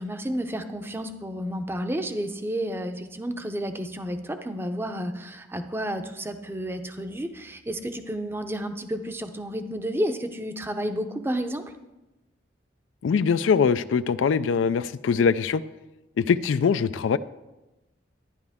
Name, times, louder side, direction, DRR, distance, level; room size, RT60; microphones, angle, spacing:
voice 1, 0.0-11.6, equal, 10° right, 8 dB, 0.6 m, -31 dB
voice 2, 13.0-15.6 16.2-17.2, left 6 dB, 90° left, 14 dB, 0.4 m, -22 dB
11.5 x 10.5 x 3.5 m, 1.0 s
head